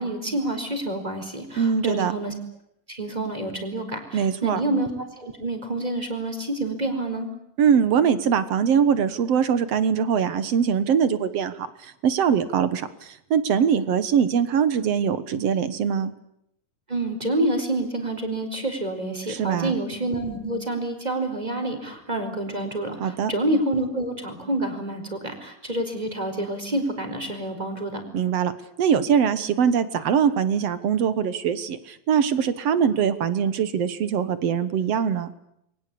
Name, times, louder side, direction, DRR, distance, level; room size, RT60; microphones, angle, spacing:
voice 1, 0.0-2.3 2.9-7.3 16.9-28.0, right 1 dB, 10° right, 5 dB, 4.4 m, -28 dB
voice 2, 1.6-2.1 4.1-4.6 7.6-16.1 19.3-19.7 23.0-23.3 28.1-28.5 28.8-35.3, right 7 dB, 60° right, 13 dB, 1.9 m, -22 dB
29.0 x 23.0 x 8.6 m, 0.77 s
omnidirectional pair, 4.0 m